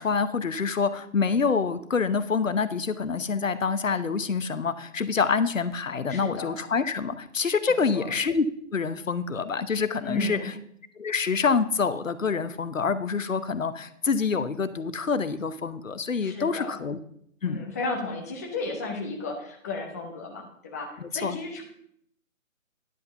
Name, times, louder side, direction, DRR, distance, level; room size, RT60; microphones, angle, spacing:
voice 1, 0.0-8.5 8.7-10.5 11.0-17.0 17.4-17.7 21.0-21.4, left 5 dB, 70° left, 13 dB, 0.9 m, -26 dB
voice 2, 6.1-6.5 7.7-8.1 10.0-10.5 16.2-16.8 17.4-21.6, left 3 dB, 10° left, 1 dB, 0.7 m, -34 dB
10.5 x 5.6 x 6.7 m, 0.69 s
figure-of-eight pair, 145°, 41 cm